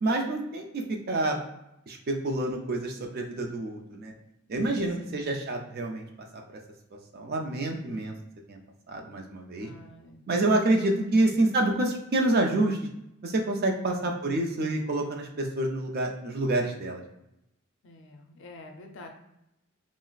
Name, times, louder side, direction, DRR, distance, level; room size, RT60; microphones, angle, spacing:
voice 1, 0.0-1.4 1.9-4.1 4.5-6.1 6.3-6.4 7.1-8.1 8.5-8.6 8.9-9.7 10.3-12.9 13.2-17.0, right 2 dB, 45° right, 2 dB, 0.4 m, -27 dB
voice 2, 5.0-5.4 9.6-10.2 13.9-14.1 17.8-19.1, left 2 dB, 60° left, 3 dB, 0.5 m, -48 dB
2.4 x 2.0 x 3.9 m, 0.83 s
head